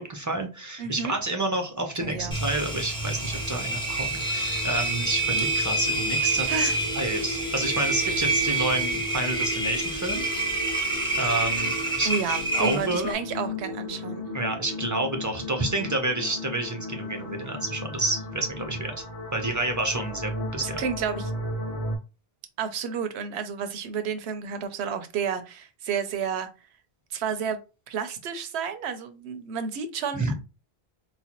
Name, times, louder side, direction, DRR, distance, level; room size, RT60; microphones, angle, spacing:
voice 1, 0.0-10.3 11.1-12.1 12.5-13.1 14.3-19.0 19.3-20.8 30.1-30.3, right 2 dB, 25° right, 0.4 m, -29 dB
voice 2, 0.8-1.1 2.0-2.4 6.5-6.8 12.0-14.2 20.6-21.3 22.6-26.5 27.1-27.6 27.9-30.4, right 6 dB, 80° right, 0.9 m, -31 dB
sound 1, 2.0-22.0, left 1 dB, 40° left, 0.8 m, -35 dB
Engine, 2.3-13.1, right 2 dB, 5° left, 0.9 m, -28 dB
4.0 x 2.2 x 2.9 m
omnidirectional pair, 1.1 m